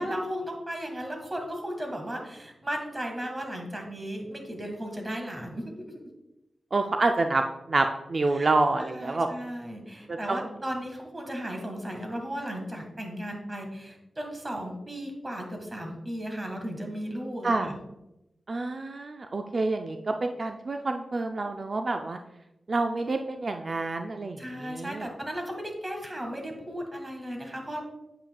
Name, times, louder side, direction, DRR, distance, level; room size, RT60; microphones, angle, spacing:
voice 1, 0.0-6.1 8.3-8.5 8.8-17.8 24.4-27.8, equal, 25° right, 3 dB, 1.7 m, -35 dB
voice 2, 6.7-9.3 10.1-10.4 17.4-17.7 18.5-22.2 22.7-25.1, right 3 dB, 50° right, 5 dB, 0.4 m, -28 dB
8.4 x 5.8 x 2.3 m, 0.92 s
cardioid pair, 55°, 0 cm